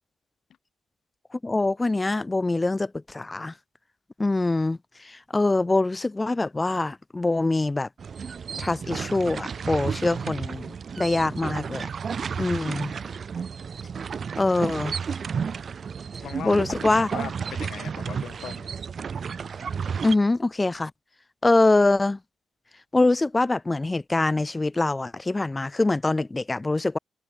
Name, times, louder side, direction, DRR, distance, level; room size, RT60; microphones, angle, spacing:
voice 1, 1.3-3.5 4.2-7.9 8.6-11.9 12.4-12.9 14.4-15.0 16.4-17.1 20.0-20.9 21.4-22.2 22.9-27.0, left 2 dB, 20° left, 0.4 m, -24 dB
sound 1, 8.0-20.1, right 6 dB, 45° right, 1.7 m, -32 dB
voice 2, 16.2-18.7, left 9 dB, 65° left, 6.7 m, -39 dB
cardioid pair, 90°, 0 cm